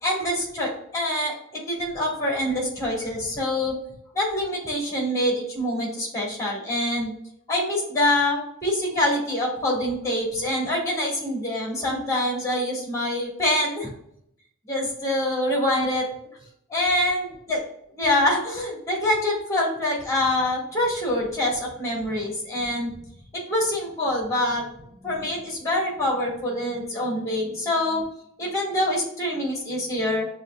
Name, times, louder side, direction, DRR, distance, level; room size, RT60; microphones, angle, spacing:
voice 1, 0.0-1.3 1.7-3.7 4.1-7.1 7.5-13.9 14.7-16.1 16.7-17.6 18.0-23.0 23.5-24.6 25.0-28.0 28.4-30.3, left 1 dB, 15° left, -3 dB, 1.7 m, -25 dB
7.0 x 3.1 x 2.3 m, 0.73 s
head